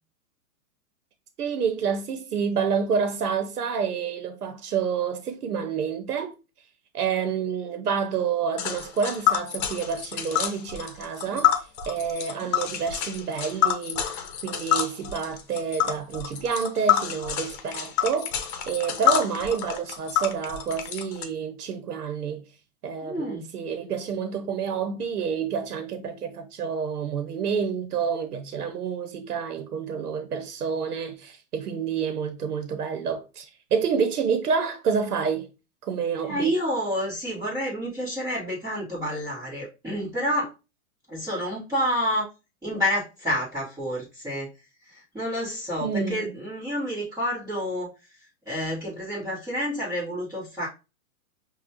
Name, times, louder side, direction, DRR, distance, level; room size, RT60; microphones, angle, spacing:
voice 1, 1.4-6.3 6.9-22.4 22.8-35.5 35.8-36.6 45.8-46.3, right 6 dB, 85° right, 0.9 m, -28 dB
Tick, 8.6-21.2, left 10 dB, 45° left, 0.9 m, -27 dB
voice 2, 23.0-23.5 36.2-40.5 41.1-42.3 42.6-44.5 44.8-47.9 48.4-50.7, equal, 10° right, 1.4 m, -29 dB
5.1 x 2.4 x 2.9 m
hypercardioid pair, 125°, 45 cm